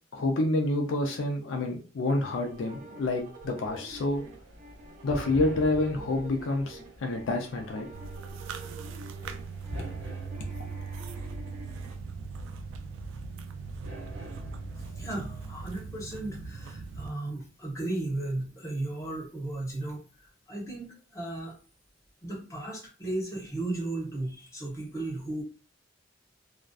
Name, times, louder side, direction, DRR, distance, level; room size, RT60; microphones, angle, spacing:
voice 1, 0.1-4.2 5.0-7.9, left 2 dB, 75° left, 3 dB, 0.4 m, -28 dB
sound 1, 2.0-11.9, right 2 dB, 40° right, 0.7 m, -47 dB
sound 2, 3.9-15.8, right 1 dB, 90° right, 0.8 m, -46 dB
sound 3, 7.9-17.1, right 5 dB, 70° right, 0.3 m, -40 dB
voice 2, 14.8-20.0 20.5-21.5 22.2-25.4, right 2 dB, 15° left, -2 dB, 0.8 m, -35 dB
2.5 x 2.2 x 2.3 m, 0.35 s
head